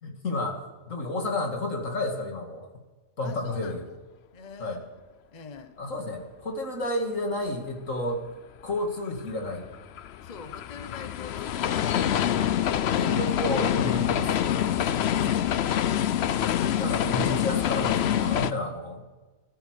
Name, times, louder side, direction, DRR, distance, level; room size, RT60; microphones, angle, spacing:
voice 1, 0.0-2.7 3.2-3.8 4.6-4.8 5.8-8.2 8.6-9.6 12.9-14.3 14.6-15.4 16.7-19.1, left 2 dB, 80° left, 3 dB, 2.6 m, -31 dB
voice 2, 3.2-4.0 4.3-4.9 5.3-5.7 10.2-12.1 14.7-15.6, left 5 dB, 35° left, 9 dB, 1.0 m, -44 dB
sound 1, 9.2-18.5, left 10 dB, 60° left, 0.8 m, -26 dB
14.5 x 13.0 x 6.6 m, 1.2 s
omnidirectional pair, 1.3 m